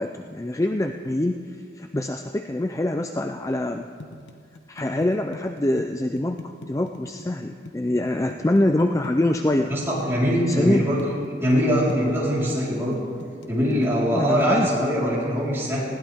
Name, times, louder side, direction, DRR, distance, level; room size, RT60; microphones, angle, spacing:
voice 1, 0.0-3.9 4.7-9.7 10.5-10.8 14.1-14.7, left 1 dB, 15° left, 6 dB, 0.4 m, -24 dB
sound 1, 4.0-10.0 10.5-11.6 11.9-14.7, left 2 dB, 85° left, 1.1 m, -39 dB
voice 2, 9.7-11.0 11.4-13.0 13.5-15.8, equal, 15° right, -7 dB, 4.2 m, -22 dB
20.5 x 16.5 x 3.6 m, 2.2 s
head